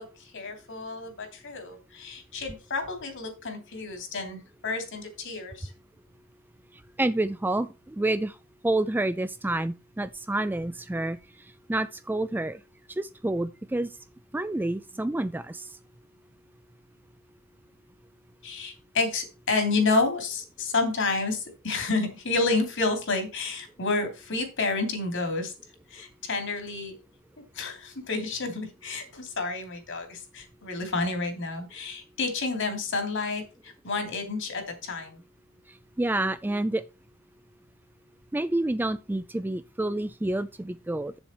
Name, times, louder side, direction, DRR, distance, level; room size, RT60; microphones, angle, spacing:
voice 1, 0.0-5.7 18.4-25.5 25.9-26.9 27.5-35.2, left 3 dB, 60° left, 2.7 m, -30 dB
voice 2, 7.0-8.4 8.6-11.2 11.7-12.6 12.9-13.9 14.3-15.7 36.0-36.8 38.3-41.1, right 2 dB, 10° right, 0.3 m, -28 dB
8.1 x 7.1 x 4.3 m
head